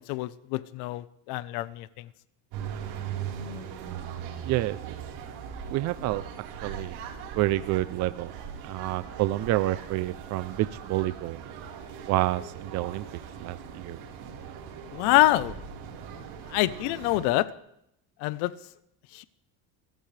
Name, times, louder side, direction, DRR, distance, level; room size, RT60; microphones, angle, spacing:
voice 1, 0.1-1.9 14.9-15.6 16.5-17.5 18.2-18.5 19.1-19.2, left 17 dB, 75° left, 16 dB, 0.9 m, -25 dB
sound 1, 2.5-17.3, right 7 dB, 80° right, 4.3 m, -40 dB
voice 2, 4.4-4.8 5.7-7.0 7.4-8.3 8.6-11.4 12.1-13.0 13.4-14.0, right 16 dB, 45° right, 14 dB, 0.5 m, -28 dB
28.5 x 14.5 x 3.3 m, 0.76 s
cardioid pair, 170°, 38 cm